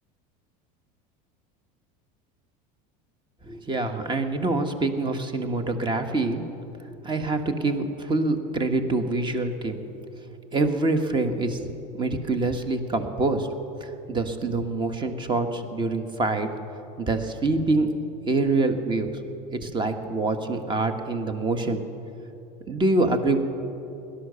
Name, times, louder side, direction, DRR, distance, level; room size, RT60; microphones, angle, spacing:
voice 1, 3.5-6.4 7.0-10.0 10.5-11.7 11.9-13.5 13.8-16.5 17.0-17.9 18.3-19.1 19.5-21.8 22.7-23.4, right 2 dB, 20° right, 7 dB, 1.4 m, -25 dB
17.5 x 12.0 x 6.9 m, 2.8 s
supercardioid pair, 115°, 21 cm